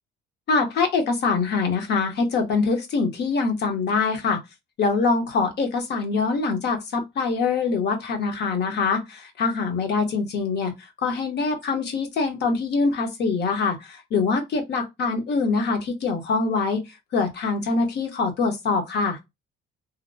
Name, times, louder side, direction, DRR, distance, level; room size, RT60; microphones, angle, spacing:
voice 1, 0.5-4.4 4.8-16.8 17.1-19.2, left 4 dB, 55° left, 0.9 m, -24 dB
2.8 x 2.1 x 2.5 m
cardioid pair, 140°, 20 cm